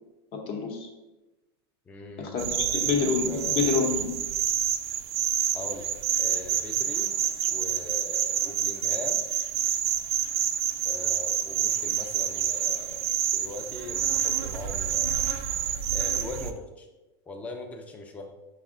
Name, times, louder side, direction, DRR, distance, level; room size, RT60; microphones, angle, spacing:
voice 1, 0.3-0.9 2.2-4.1, left 5 dB, 40° left, 2 dB, 0.8 m, -27 dB
voice 2, 1.9-3.0 3.2-3.7 5.5-5.9 6.2-7.1 7.5-9.2 10.9-15.3 15.9-16.9 17.3-18.3, left 3 dB, 10° left, 3 dB, 0.4 m, -40 dB
sound 1, 2.4-16.5, right 9 dB, 75° right, 0.4 m, -28 dB
5.1 x 2.1 x 3.6 m, 1.1 s
supercardioid pair, 130°, 14 cm